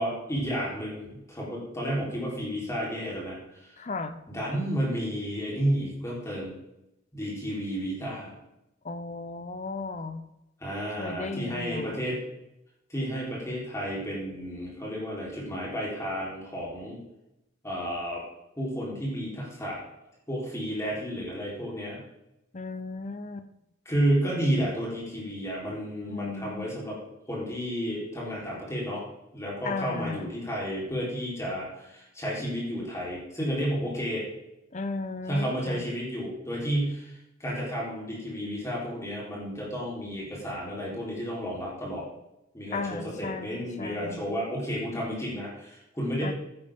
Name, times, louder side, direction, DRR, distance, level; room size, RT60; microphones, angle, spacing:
voice 1, 0.0-3.7 4.3-6.5 7.1-8.3 10.6-12.2 12.9-17.0 17.6-18.2 18.6-19.8 20.3-22.0 23.9-27.0 27.3-29.0 29.3-34.2 35.3-42.0 42.5-46.3, equal, 15° left, -5 dB, 3.8 m, -31 dB
voice 2, 3.8-4.2 8.8-10.2 10.9-12.0 22.5-23.5 26.1-26.8 29.6-30.3 34.7-35.9 42.7-44.3 46.2-46.3, left 3 dB, 35° left, 10 dB, 0.8 m, -35 dB
11.0 x 9.9 x 3.7 m, 0.88 s
head